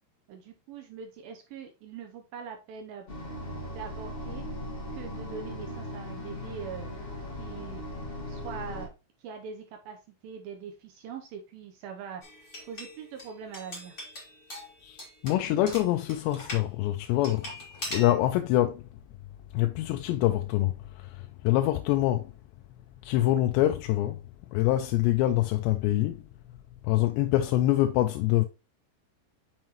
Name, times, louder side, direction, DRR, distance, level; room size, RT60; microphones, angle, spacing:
voice 1, 0.3-3.1 3.8-4.4 4.9-6.9 7.4-7.8 8.3-8.9 9.2-10.0 10.2-13.9, right 6 dB, 85° right, 2.0 m, -42 dB
sound 1, 3.1-8.9, left 1 dB, 60° left, 0.5 m, -38 dB
sound 2, 12.2-16.6 17.2-18.1, left 1 dB, 30° left, 1.4 m, -41 dB
voice 2, 15.2-17.4 17.9-18.8 19.5-20.7 21.4-22.3 23.1-24.2 24.5-26.2 26.9-28.5, left 14 dB, 80° left, 2.6 m, -25 dB
7.1 x 5.8 x 3.0 m
omnidirectional pair, 5.3 m